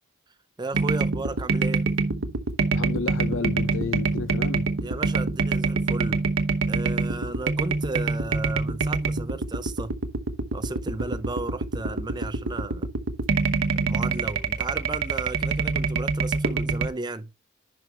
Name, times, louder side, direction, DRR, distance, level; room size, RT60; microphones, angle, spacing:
voice 1, 0.6-1.9 4.8-6.3 6.7-10.0 10.5-12.9 13.8-17.3, right 2 dB, 20° right, 0.6 m, -34 dB
sound 1, 0.7-16.9, right 4 dB, 85° right, 1.0 m, -26 dB
voice 2, 2.7-4.7, left 4 dB, 80° left, 0.6 m, -31 dB
11.0 x 5.0 x 3.2 m
head